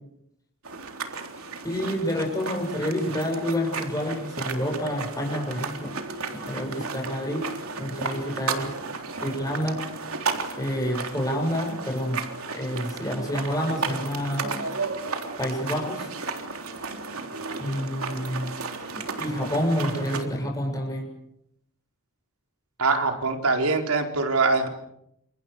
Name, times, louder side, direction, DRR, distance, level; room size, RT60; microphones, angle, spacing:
sound 1, 0.6-20.2, right 4 dB, 70° right, 3.6 m, -34 dB
voice 1, 1.6-5.9 6.3-7.5 7.8-8.7 9.2-9.9 10.6-14.6 15.4-16.1 17.6-18.5 18.9-21.1, equal, 15° left, 1 dB, 7.3 m, -28 dB
voice 2, 22.8-24.7, right 3 dB, 85° right, 4 dB, 4.6 m, -23 dB
29.5 x 27.0 x 6.7 m, 0.78 s
head